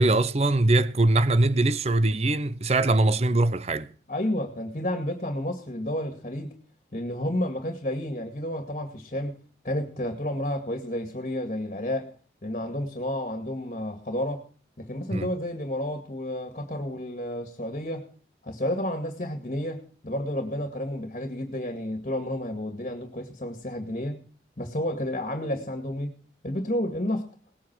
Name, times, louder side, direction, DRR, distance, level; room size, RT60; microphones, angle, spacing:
voice 1, 0.0-3.9 15.1-15.3, right 2 dB, 35° right, 0.7 m, -22 dB
voice 2, 4.1-6.5 6.9-9.4 9.6-12.1 12.4-14.4 14.8-18.1 18.4-24.2 24.6-26.1 26.4-27.3, left 1 dB, 40° left, 2.1 m, -31 dB
19.0 x 8.7 x 6.1 m
head